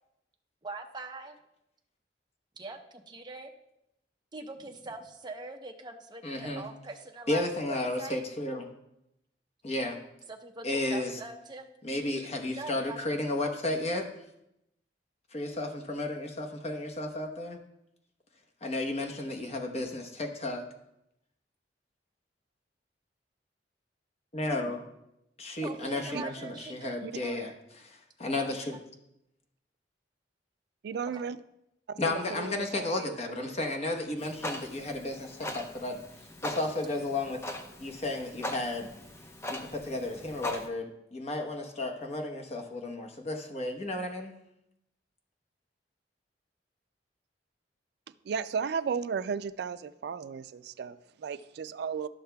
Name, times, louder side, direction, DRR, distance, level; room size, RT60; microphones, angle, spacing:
voice 1, 0.6-1.4 2.6-3.5 4.3-8.2 10.3-11.7 12.0-13.4 25.6-27.5 28.3-28.8 31.1-31.2, right 3 dB, 25° right, 3 dB, 0.7 m, -43 dB
voice 2, 6.2-6.6 7.3-8.6 9.6-10.0 10.6-11.1 11.8-14.1 15.3-17.6 18.6-20.6 24.3-24.8 25.4-27.5 27.8-28.7 32.0-36.0 36.4-37.4 37.8-38.9 39.5-44.3, left 2 dB, 40° left, 3 dB, 1.0 m, -33 dB
voice 3, 30.8-31.4 31.9-33.6 48.2-52.1, right 6 dB, 65° right, 14 dB, 0.3 m, -35 dB
Clock, 34.2-40.7, left 1 dB, 15° left, 0.6 m, -40 dB
13.0 x 6.4 x 2.3 m, 0.83 s
head